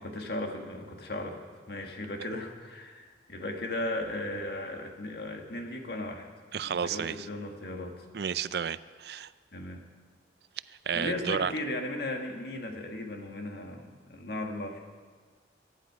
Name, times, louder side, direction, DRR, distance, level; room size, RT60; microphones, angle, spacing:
voice 1, 0.0-6.3 6.6-8.1 9.5-9.8 10.9-14.8, left 1 dB, 60° left, 3 dB, 1.8 m, -36 dB
voice 2, 6.5-7.1 8.1-9.3 10.7-11.5, right 7 dB, 60° right, 16 dB, 0.4 m, -32 dB
22.5 x 10.5 x 4.8 m, 1.5 s
head